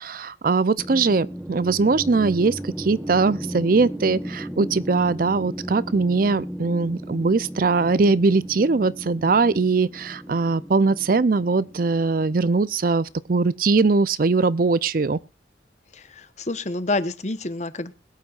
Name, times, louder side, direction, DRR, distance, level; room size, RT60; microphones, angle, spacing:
voice 1, 0.0-15.2, right 4 dB, 50° right, 0.5 m, -21 dB
sound 1, 0.8-12.9, equal, 5° right, 1.1 m, -35 dB
voice 2, 15.9-17.9, left 2 dB, 40° left, 1.0 m, -28 dB
21.5 x 8.3 x 2.4 m
head